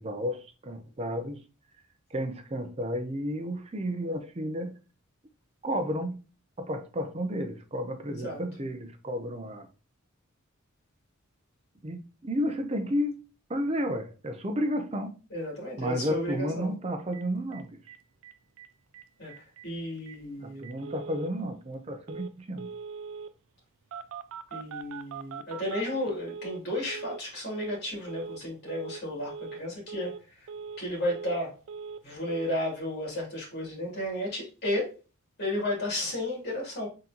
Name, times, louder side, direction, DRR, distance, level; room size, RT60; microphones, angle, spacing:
voice 1, 0.0-1.4 2.1-4.8 5.6-6.2 6.6-9.7 11.8-13.2 13.5-15.1 15.8-17.8 20.4-22.7, equal, 30° right, 0.6 m, -32 dB
voice 2, 8.1-8.4 15.3-16.7 19.2-20.7 24.5-30.1 30.8-31.5 32.0-35.0 35.4-36.9, left 1 dB, 50° left, 2.5 m, -33 dB
Telephone, 17.1-17.2 17.5-17.6 17.9-18.0 18.2-18.7 18.9-19.0 19.3-19.7 20.1-20.2 20.6-21.3 22.1-22.3 22.6-23.3 23.9-26.6 26.9-27.2 27.5-27.8 28.1-28.4 28.7-29.0 29.3-29.6 29.9-30.2 30.5-31.4 31.7-32.0 32.3-32.5, right 6 dB, 75° right, 0.3 m, -41 dB
4.1 x 3.8 x 2.8 m
head